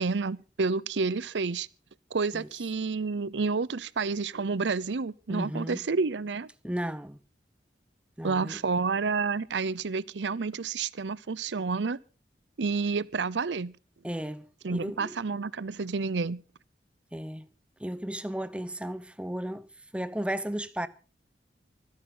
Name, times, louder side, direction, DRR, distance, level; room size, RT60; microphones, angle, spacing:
voice 1, 0.0-1.7 2.1-6.5 8.2-12.0 12.6-13.7 14.6-16.4, right 4 dB, 90° right, 0.6 m, -29 dB
voice 2, 5.3-5.8 6.6-7.2 8.2-8.6 14.0-15.1 17.1-17.5 17.8-19.7 19.9-20.9, right 1 dB, 5° right, 0.8 m, -34 dB
25.0 x 10.5 x 3.9 m
head